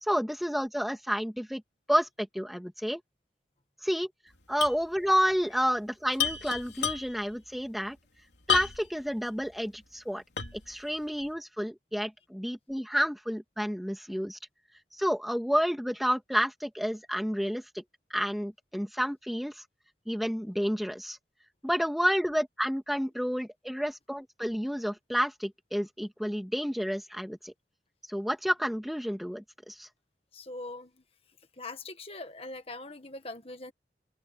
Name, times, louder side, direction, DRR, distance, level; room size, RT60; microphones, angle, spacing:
voice 1, 0.0-1.6 1.9-3.0 3.8-4.1 4.5-8.0 8.5-10.2 10.5-14.4 14.9-17.8 18.1-19.6 20.1-21.2 21.6-27.5 28.1-29.9, equal, ahead, 2.6 m, -30 dB
sound 1, 4.6-4.9 5.1-5.2 6.1-7.3 8.5-9.0 9.5-9.6 10.4-10.7, left 8 dB, 85° left, 3.5 m, -30 dB
voice 2, 30.3-31.0 31.6-33.7, left 2 dB, 35° left, 1.7 m, -42 dB
open air
head